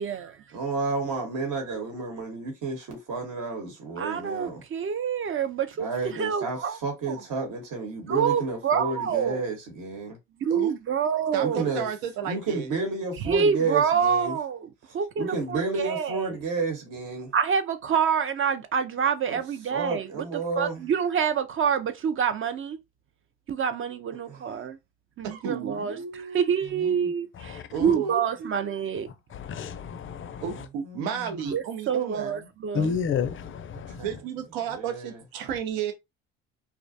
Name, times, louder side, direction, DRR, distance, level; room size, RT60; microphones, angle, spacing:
voice 1, 0.0-0.4 4.0-6.8 7.1-7.2 8.1-9.4 10.4-11.6 13.2-14.7 14.9-16.3 17.3-20.3 20.6-22.8 23.5-24.8 25.2-29.1 31.5-32.9, right 7 dB, 40° right, 0.4 m, -27 dB
voice 2, 0.5-4.6 5.8-10.2 11.4-11.9 12.2-14.4 15.2-17.3 19.3-19.4 19.7-20.9 24.3-24.4 26.8-27.1 30.5-30.6 30.8-31.2 34.0-34.1 34.7-35.2, right 4 dB, 60° right, 1.1 m, -31 dB
voice 3, 11.3-12.7 25.2-26.4 27.7-28.5 30.4-32.5 34.0-35.9, right 7 dB, 85° right, 0.7 m, -33 dB
voice 4, 27.3-28.0 29.1-30.7 32.7-34.2, left 6 dB, 35° left, 0.4 m, -32 dB
2.4 x 2.1 x 2.6 m
supercardioid pair, 75°, 35 cm